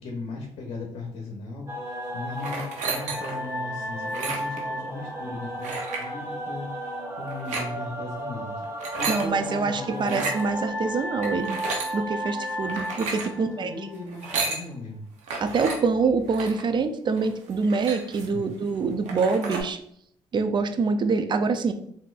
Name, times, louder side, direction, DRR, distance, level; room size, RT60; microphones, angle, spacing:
voice 1, 0.0-1.7 2.1-10.3 13.4-15.1 18.3-18.5, left 2 dB, 55° left, -1 dB, 0.8 m, -37 dB
sound 1, 1.7-14.3, equal, 20° right, 0.8 m, -34 dB
sound 2, 2.4-3.5 4.0-4.6 5.6-6.1 7.3-7.7 8.6-9.3 10.0-10.4 11.2-11.9 12.6-13.3 14.1-14.6 15.3-15.8 16.3-16.6 17.2-17.3 17.5-18.4 18.8-18.9 19.1-19.6, right 4 dB, 70° right, 0.8 m, -32 dB
voice 2, 9.1-11.6 11.9-13.7 15.4-19.8 20.3-21.7, right 4 dB, 40° right, 9 dB, 0.4 m, -25 dB
3.6 x 2.7 x 2.4 m, 0.69 s
supercardioid pair, 65°, 13 cm